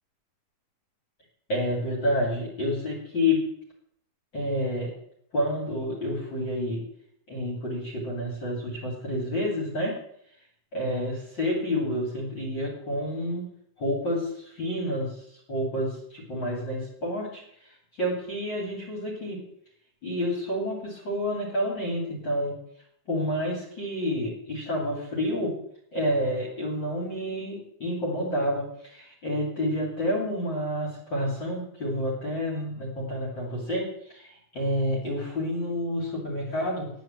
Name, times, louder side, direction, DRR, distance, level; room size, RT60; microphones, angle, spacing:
voice 1, 1.5-3.4 4.3-4.9 5.3-6.8 7.3-9.9 10.7-13.4 13.8-15.2 15.5-17.4 18.0-19.4 20.0-22.5 23.1-25.5 25.9-36.9, left 1 dB, 35° left, -2 dB, 2.8 m, -29 dB
10.0 x 9.1 x 7.4 m, 0.70 s
omnidirectional pair, 4.3 m